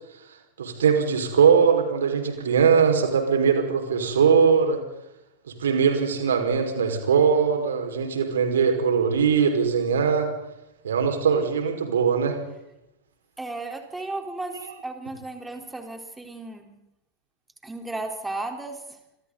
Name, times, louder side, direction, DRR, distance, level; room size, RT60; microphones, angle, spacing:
voice 1, 0.6-4.8 5.6-10.3 10.8-12.4, right 6 dB, 65° right, 4 dB, 5.0 m, -21 dB
voice 2, 13.4-16.8 17.6-18.8, right 2 dB, 10° right, 4 dB, 3.9 m, -34 dB
28.0 x 26.0 x 4.0 m, 0.90 s
figure-of-eight pair, 90°, 0 cm